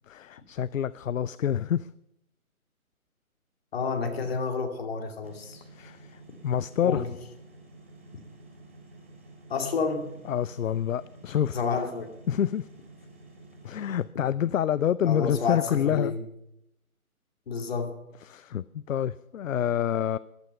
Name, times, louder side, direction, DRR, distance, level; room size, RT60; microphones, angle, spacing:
voice 1, 0.1-1.9 5.7-7.1 10.3-11.6 12.3-12.7 13.6-16.2 18.2-20.2, left 9 dB, 65° left, 0.5 m, -27 dB
voice 2, 3.7-5.6 6.8-7.1 9.5-10.1 11.5-12.1 15.1-16.2 17.5-17.9, left 5 dB, 45° left, 2.5 m, -29 dB
sound 1, 5.2-14.0, right 2 dB, 10° right, 0.7 m, -51 dB
15.0 x 12.0 x 5.6 m
figure-of-eight pair, 155°, 44 cm